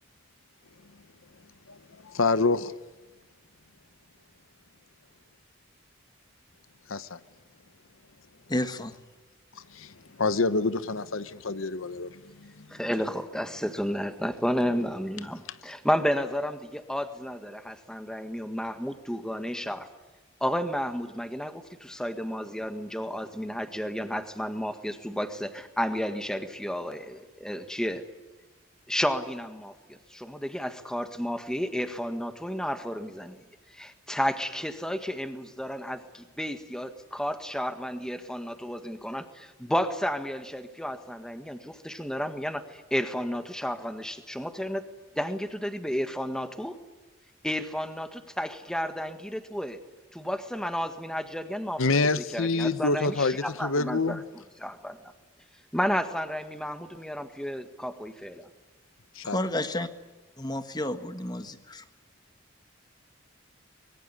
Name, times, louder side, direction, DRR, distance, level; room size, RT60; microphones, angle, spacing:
voice 1, 2.0-2.7 6.9-7.2 9.7-9.9 10.2-12.6 51.8-54.2 59.2-59.4, left 3 dB, 80° left, 0.9 m, -27 dB
voice 2, 8.5-9.0 59.2-59.9 60.4-61.8, left 1 dB, 20° left, 1.5 m, -31 dB
voice 3, 12.7-19.9 20.4-28.0 28.9-33.4 33.7-44.8 45.1-46.8 47.4-49.8 50.1-55.0 55.7-58.5, equal, 5° left, 1.6 m, -32 dB
24.5 x 22.5 x 9.8 m
head